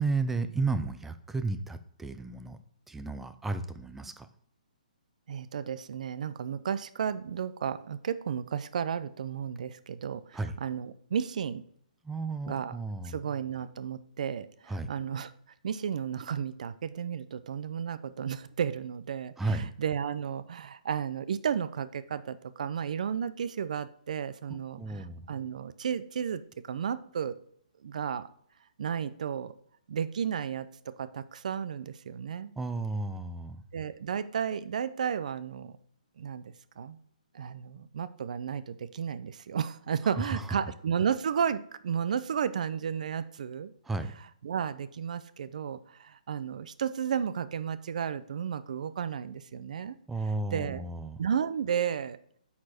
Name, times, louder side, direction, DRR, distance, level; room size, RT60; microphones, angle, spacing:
voice 1, 0.0-2.6 2.9-4.3 10.3-10.5 12.0-13.2 14.7-14.9 19.4-19.7 24.5-25.2 32.6-33.6 40.3-40.4 43.9-44.1 50.1-51.2, right 3 dB, 5° right, 10 dB, 0.4 m, -33 dB
voice 2, 5.3-11.6 12.5-12.8 13.0-15.3 15.6-26.4 26.7-27.4 27.8-28.3 28.8-29.5 29.9-32.5 33.7-35.8 36.2-37.0 37.3-43.7 44.2-50.0 50.2-50.8 51.2-52.2, right 7 dB, 60° right, 14 dB, 0.6 m, -33 dB
9.4 x 4.4 x 4.3 m, 0.67 s
hypercardioid pair, 155°, 4 cm